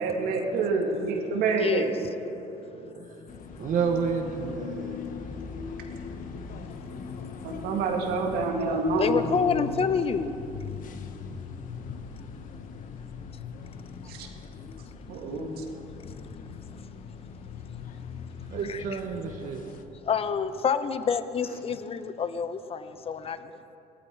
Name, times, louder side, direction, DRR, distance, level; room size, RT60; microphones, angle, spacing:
voice 1, 0.0-1.9 7.4-9.3 14.1-14.3 15.1-15.6, right 3 dB, 75° right, 2 dB, 2.2 m, -27 dB
voice 2, 0.5-1.1 2.3-3.1 3.6-5.3 18.5-19.7 21.5-21.6, right 6 dB, 55° right, 3 dB, 1.3 m, -32 dB
voice 3, 1.6-1.9 3.0-3.3 6.7-7.4 9.0-10.5 11.1-12.2 13.2-13.3 13.7-13.8 14.0-14.9 15.3-15.4 16.1-16.8 18.7-18.8 20.0-23.5, left 6 dB, 35° left, 12 dB, 0.8 m, -30 dB
sound 1, 3.3-19.8, left 6 dB, 55° left, 1.2 m, -40 dB
17.5 x 13.0 x 4.6 m, 2.9 s
supercardioid pair, 85°, 16 cm